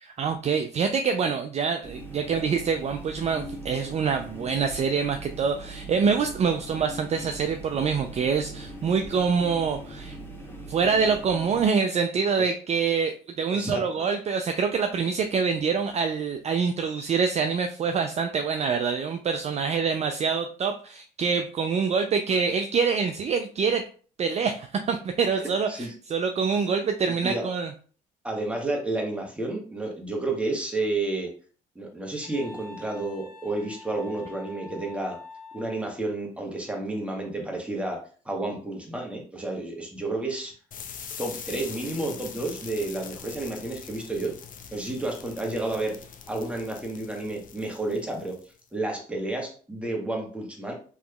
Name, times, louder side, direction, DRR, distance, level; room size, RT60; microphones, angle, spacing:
voice 1, 0.0-10.2 10.7-23.9 24.2-27.7, right 5 dB, 35° right, 6 dB, 0.4 m, -25 dB
sound 1, 1.8-11.7, right 1 dB, 10° left, 1.0 m, -41 dB
voice 2, 13.5-13.8 25.4-25.9 27.2-27.4 28.2-31.3 31.7-35.2 35.5-38.0 38.2-40.5 41.2-44.3 44.7-46.0 46.3-48.4 48.7-50.7, right 2 dB, 5° right, 1 dB, 1.2 m, -31 dB
Wind instrument woodwind instrument, 32.2-35.9, left 3 dB, 55° right, 1.4 m, -45 dB
sound 2, 40.7-48.6, left 7 dB, 50° left, 0.5 m, -43 dB
3.5 x 2.9 x 2.2 m, 0.42 s
supercardioid pair, 65°, 18 cm